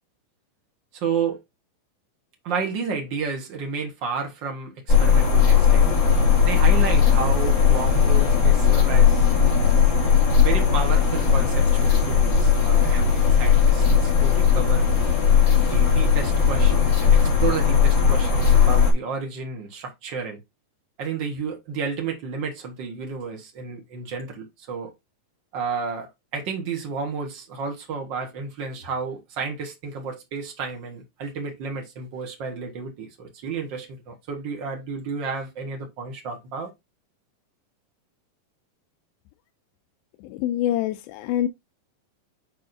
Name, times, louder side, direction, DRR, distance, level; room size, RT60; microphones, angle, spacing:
voice 1, 0.9-1.4 2.4-6.0 6.4-9.3 10.4-14.9 15.7-20.4 21.0-24.9 25.5-36.7, right 5 dB, 90° right, 1.0 m, -31 dB
sound 1, 4.9-18.9, left 7 dB, 35° left, 2.6 m, -18 dB
voice 2, 40.2-41.5, left 12 dB, 85° left, 2.4 m, -25 dB
8.3 x 4.6 x 2.6 m
omnidirectional pair, 4.2 m